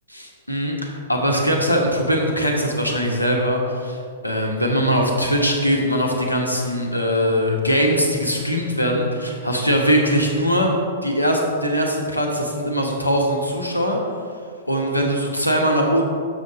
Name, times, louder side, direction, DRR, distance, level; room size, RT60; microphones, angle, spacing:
voice 1, 0.1-4.0 4.2-10.7 11.0-14.0 14.7-16.0, equal, 85° left, 1 dB, 1.2 m, -21 dB
6.8 x 6.4 x 4.1 m, 2.2 s
figure-of-eight pair, 105°, 0 cm